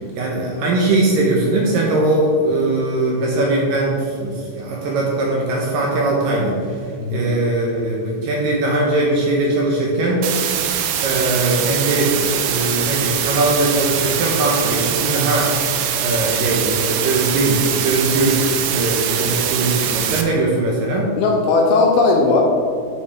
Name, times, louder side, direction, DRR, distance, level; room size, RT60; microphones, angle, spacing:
voice 1, 0.2-6.6 7.1-10.2 11.0-15.5 16.0-21.1, right 2 dB, 70° right, -3 dB, 2.3 m, -20 dB
voice 2, 7.0-7.3 21.2-22.4, left 3 dB, 80° left, 0 dB, 2.5 m, -16 dB
sound 1, 10.2-20.2, right 9 dB, 85° right, 3.0 m, -22 dB
11.0 x 5.9 x 3.5 m, 2.2 s
omnidirectional pair, 5.0 m